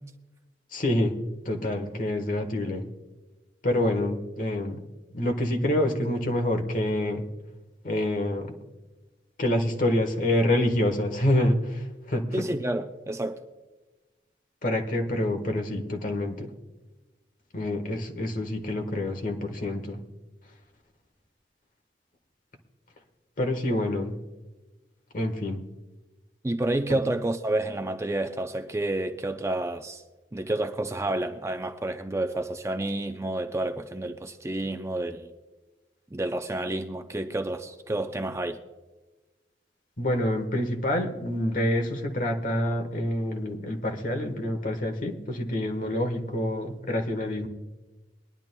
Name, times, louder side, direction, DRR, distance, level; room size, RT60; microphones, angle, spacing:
voice 1, 0.7-1.1 1.4-2.9 3.6-4.8 5.1-7.2 7.8-8.5 9.4-12.4 14.6-16.5 17.5-20.0 23.4-24.2 25.1-25.7 26.9-27.0 40.0-47.5, left 1 dB, 50° left, 1.3 m, -27 dB
voice 2, 12.3-13.4 26.4-30.0 30.3-35.3 36.1-38.6, right 1 dB, 15° right, 0.5 m, -29 dB
22.0 x 11.0 x 2.2 m
head